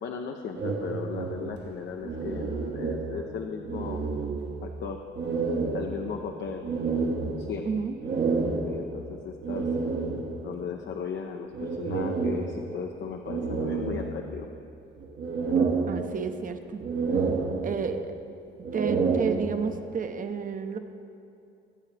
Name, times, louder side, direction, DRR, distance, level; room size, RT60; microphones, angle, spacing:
voice 1, 0.0-4.0 4.6-5.0 5.7-6.7 7.4-7.7 8.7-9.7 10.4-14.5, left 6 dB, 65° left, 3 dB, 0.8 m, -36 dB
sound 1, 0.5-3.4 3.6-4.7 5.1-10.6 11.5-12.8 13.3-14.6 15.0-16.5 16.8-18.1 18.5-19.9, right 4 dB, 60° right, 1.2 m, -30 dB
voice 2, 15.9-16.8 17.6-18.2 18.7-20.8, right 5 dB, 40° right, 7 dB, 0.9 m, -31 dB
22.0 x 8.5 x 3.4 m, 2.5 s
cardioid pair, 90°, 20 cm